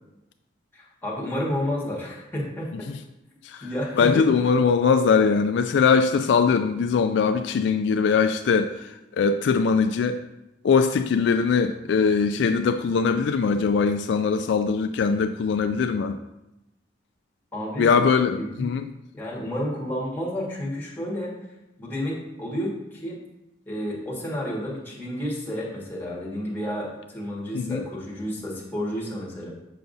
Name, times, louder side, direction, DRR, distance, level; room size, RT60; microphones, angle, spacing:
voice 1, 0.7-2.9 3.6-4.3 17.5-17.9 18.4-18.7 19.1-21.3 21.8-23.2 23.6-29.5, equal, 10° left, -5 dB, 1.6 m, -31 dB
voice 2, 4.0-10.2 10.6-16.2 17.8-18.9 27.5-27.8, left 5 dB, 70° left, 8 dB, 0.3 m, -21 dB
6.9 x 5.8 x 2.6 m, 0.92 s
head